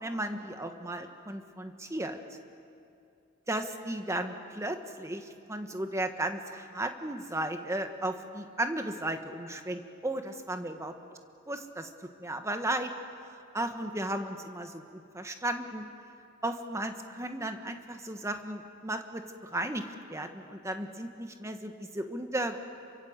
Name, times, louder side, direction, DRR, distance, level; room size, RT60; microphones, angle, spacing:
voice 1, 0.0-2.4 3.5-10.9 11.5-12.9 13.5-15.8 16.4-19.8 20.1-22.6, right 1 dB, 15° right, 6 dB, 1.4 m, -35 dB
27.0 x 24.0 x 8.0 m, 2.5 s
head